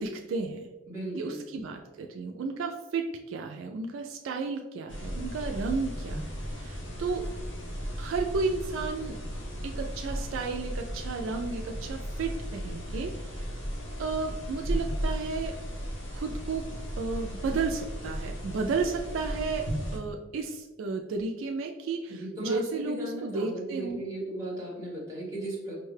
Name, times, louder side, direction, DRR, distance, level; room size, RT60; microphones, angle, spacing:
voice 1, 0.0-0.7 1.1-7.3 8.0-9.2 9.6-13.5 14.0-15.5 16.1-16.7 17.0-24.0, right 4 dB, 70° right, 3 dB, 0.3 m, -33 dB
voice 2, 0.9-1.4 22.1-25.8, right 1 dB, 15° right, -5 dB, 1.1 m, -36 dB
sound 1, 4.9-20.0, equal, 60° left, 0.8 m, -35 dB
5.3 x 2.2 x 3.2 m, 1.1 s
head